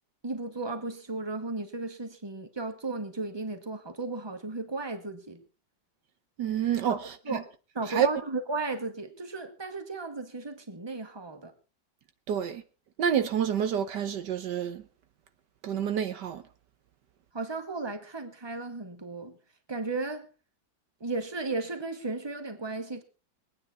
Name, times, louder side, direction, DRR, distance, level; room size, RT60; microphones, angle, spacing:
voice 1, 0.2-5.4 6.9-7.5 7.7-11.5 17.3-19.4 19.7-20.3 21.0-23.0, right 3 dB, 15° right, 1.7 m, -35 dB
voice 2, 6.4-7.4 7.9-8.1 12.3-12.6 13.0-14.8 15.6-16.4, right 8 dB, 70° right, 1.5 m, -28 dB
23.0 x 9.6 x 4.4 m
omnidirectional pair, 2.0 m